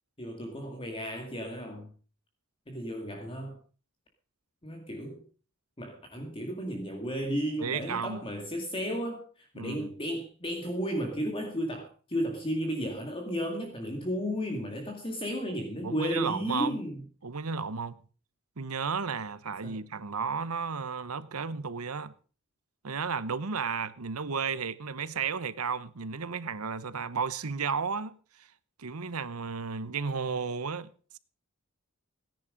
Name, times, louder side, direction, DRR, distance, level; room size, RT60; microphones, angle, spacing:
voice 1, 0.2-1.9 2.7-3.6 4.6-5.2 5.8-17.0 19.6-19.8, equal, 25° left, 2.2 m, -34 dB
voice 2, 7.6-8.2 9.6-9.9 15.8-16.8 17.2-17.9 18.6-22.1 22.8-28.2 28.8-30.9, right 5 dB, 85° right, 1.0 m, -33 dB
18.0 x 10.5 x 5.2 m
head